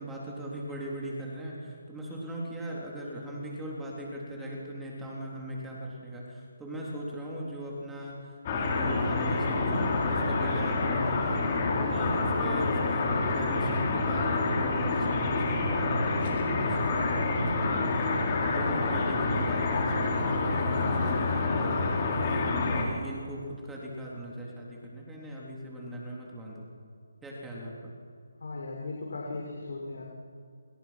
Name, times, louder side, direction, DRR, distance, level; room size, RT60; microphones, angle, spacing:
voice 1, 0.0-11.2 11.8-22.2 22.7-26.7 27.2-27.9, right 1 dB, 5° right, -4 dB, 3.9 m, -39 dB
sound 1, 8.5-22.8, left 3 dB, 25° left, 4.5 m, -27 dB
voice 2, 28.4-30.0, left 3 dB, 65° left, -2 dB, 6.3 m, -37 dB
28.0 x 28.0 x 6.1 m, 2.4 s
hypercardioid pair, 170°, 0 cm